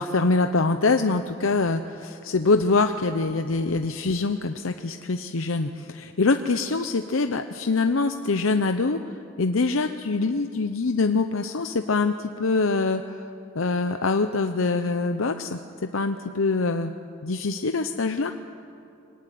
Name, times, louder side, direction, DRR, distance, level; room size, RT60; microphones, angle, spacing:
voice 1, 0.0-9.0 9.4-13.3 13.6-15.6 15.9-16.9 17.2-18.3, left 3 dB, 90° left, 7 dB, 0.8 m, -24 dB
23.5 x 19.0 x 9.2 m, 2.6 s
head